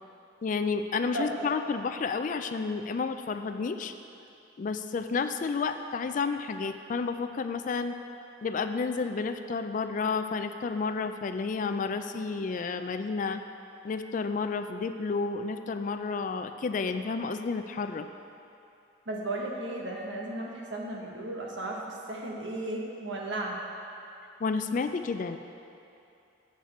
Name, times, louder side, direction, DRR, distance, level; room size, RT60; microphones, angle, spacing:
voice 1, 0.4-3.9 4.6-8.0 8.4-13.4 13.8-18.1 24.4-25.4, left 4 dB, 40° left, 8 dB, 0.3 m, -31 dB
voice 2, 1.1-1.5 19.1-23.6, right 2 dB, 75° right, -2 dB, 1.2 m, -35 dB
8.4 x 7.3 x 4.3 m, 2.7 s
head